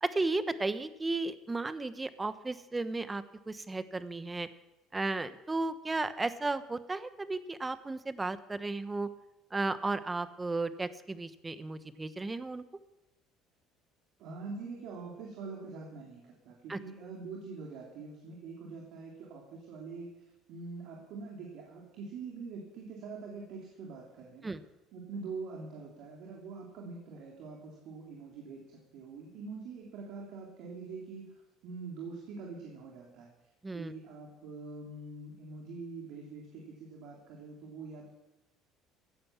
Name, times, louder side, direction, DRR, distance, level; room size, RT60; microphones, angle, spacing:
voice 1, 0.0-4.5 4.9-9.1 9.5-12.6 16.7-16.8 24.4-24.6 33.6-33.9, right 3 dB, 15° right, 12 dB, 1.1 m, -34 dB
voice 2, 14.2-24.5 24.9-33.3 33.7-38.1, right 4 dB, 65° right, -2 dB, 3.4 m, -44 dB
16.0 x 9.3 x 7.4 m, 0.95 s
supercardioid pair, 85°, 0 cm